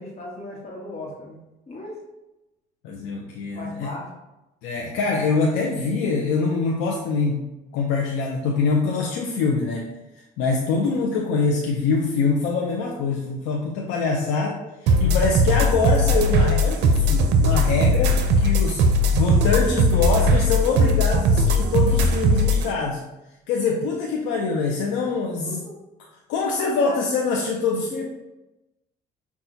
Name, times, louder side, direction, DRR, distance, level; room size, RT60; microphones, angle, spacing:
voice 1, 0.0-1.9 3.5-4.1 25.5-25.7 26.6-27.0 27.9-28.0, left 2 dB, 35° left, -4 dB, 1.2 m, -36 dB
voice 2, 2.8-3.9 4.6-9.9 10.4-18.8 19.1-23.0 23.5-25.6 26.3-28.0, left 4 dB, 85° left, 0 dB, 0.5 m, -24 dB
sound 1, 14.9-22.7, equal, 70° right, 0.5 m, -19 dB
5.7 x 2.3 x 2.7 m, 0.97 s
supercardioid pair, 80°, 19 cm